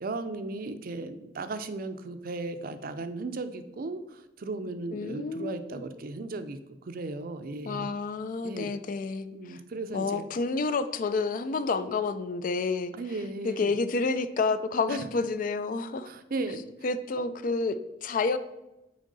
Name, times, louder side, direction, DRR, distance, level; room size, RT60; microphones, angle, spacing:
voice 1, 0.0-6.6 6.9-7.9 8.4-8.7 9.3-10.3 12.9-13.7 14.9-15.0 16.1-16.7, right 3 dB, 55° right, 0.5 m, -36 dB
voice 2, 4.9-5.8 7.6-9.6 9.9-12.9 13.4-16.1 16.8-18.4, left 4 dB, 50° left, 0.4 m, -29 dB
6.3 x 4.5 x 4.0 m
head